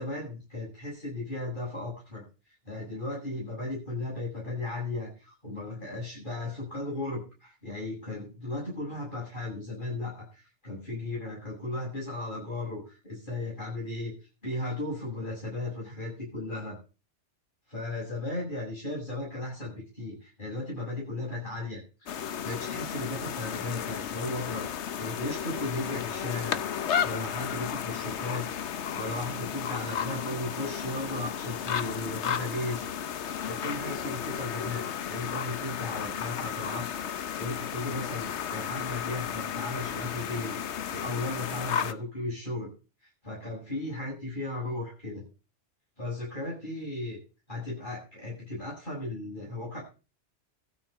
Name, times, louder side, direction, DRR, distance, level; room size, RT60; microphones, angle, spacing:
voice 1, 0.0-2.2 2.7-14.1 14.4-16.8 17.7-21.8 22.4-32.8 33.2-40.6 40.9-42.7 43.2-45.2 46.0-47.2 47.5-49.8, left 2 dB, 45° left, -4 dB, 7.7 m, -36 dB
sound 1, 22.1-41.9, left 8 dB, 70° left, 1.1 m, -33 dB
13.0 x 6.1 x 8.8 m, 0.33 s
omnidirectional pair, 1.2 m